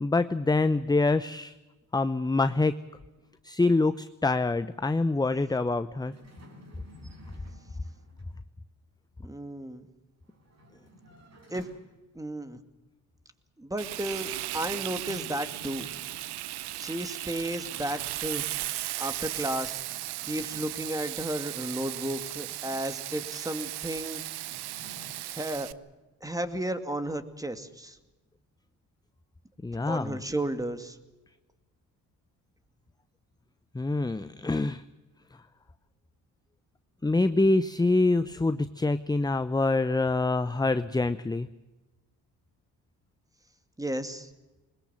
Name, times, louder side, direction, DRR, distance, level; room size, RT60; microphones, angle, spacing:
voice 1, 0.0-1.5 1.9-2.8 3.4-6.1 29.6-30.2 33.7-34.8 37.0-41.5, left 2 dB, 10° left, 12 dB, 0.8 m, -25 dB
sound 1, 6.0-8.4 10.2-12.2 14.7-16.7 19.1-21.3 24.1-25.2, left 1 dB, 40° right, 6.5 m, -53 dB
voice 2, 9.2-9.8 11.5-11.7 12.2-12.6 13.6-15.9 16.8-18.4 19.0-19.8 20.3-24.2 25.3-25.7 26.2-28.0 29.9-31.0 43.8-44.3, right 1 dB, 10° right, 10 dB, 2.3 m, -33 dB
Frying (food), 13.8-25.7, right 16 dB, 70° right, 0.9 m, -36 dB
21.5 x 20.5 x 7.5 m, 1.1 s
supercardioid pair, 70°, 41 cm